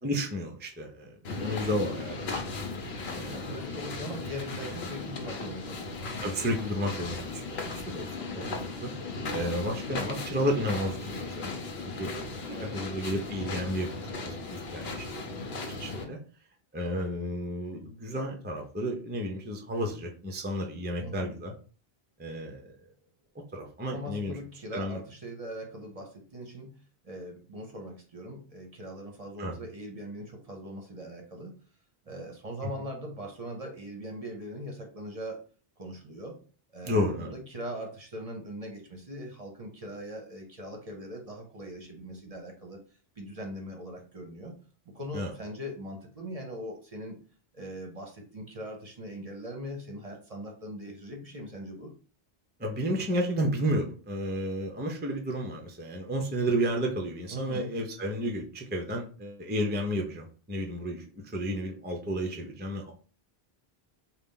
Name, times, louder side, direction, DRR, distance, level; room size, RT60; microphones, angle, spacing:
voice 1, 0.0-2.6 3.1-3.6 6.2-8.4 8.8-8.9 9.3-11.5 11.8-16.2 16.7-21.5 22.2-22.6 23.5-24.4 24.7-25.0 29.4-29.5 36.8-37.3 45.1-45.3 52.6-61.0 61.3-62.9, equal, 15° right, 2 dB, 0.5 m, -32 dB
sound 1, 1.2-16.0, left 3 dB, 80° left, 1.0 m, -37 dB
voice 2, 3.3-6.1 8.3-8.7 12.5-12.9 21.0-21.4 23.9-31.6 32.0-35.4 35.8-36.4 36.7-42.8 43.2-44.5 44.9-47.2 47.5-51.9 57.3-57.7, equal, 40° right, 2 dB, 0.8 m, -41 dB
4.0 x 2.3 x 3.7 m, 0.40 s
omnidirectional pair, 1.0 m